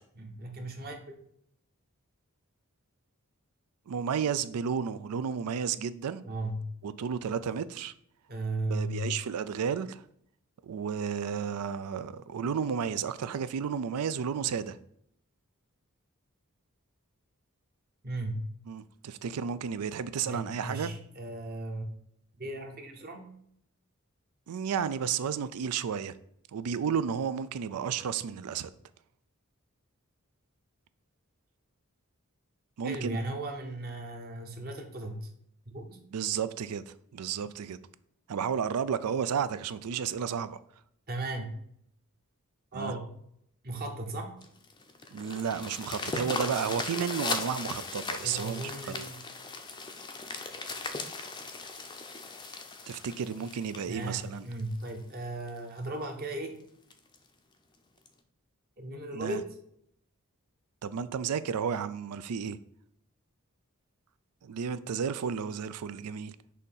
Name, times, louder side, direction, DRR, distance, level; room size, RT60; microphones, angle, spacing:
voice 1, 0.2-1.1 6.2-6.7 8.3-9.2 18.0-18.4 20.3-21.9 22.4-23.3 32.8-35.3 35.7-36.0 41.1-41.5 42.7-43.1 43.6-44.3 48.2-49.1 53.9-56.6 58.8-59.5, right 2 dB, 45° right, 0.9 m, -36 dB
voice 2, 3.9-6.2 6.8-7.9 8.7-10.0 10.6-14.8 18.7-20.9 24.5-26.2 26.5-28.7 32.8-33.2 36.1-37.8 38.3-40.6 42.7-42.9 45.1-48.7 52.9-54.5 59.1-59.4 60.8-62.6 64.4-66.3, right 7 dB, 90° right, 0.4 m, -32 dB
sound 1, 44.4-54.9 55.5-55.6 56.0-56.1 56.4-56.5 56.9-57.2 58.1-58.2, left 3 dB, 20° left, 0.5 m, -38 dB
6.4 x 2.7 x 5.4 m
head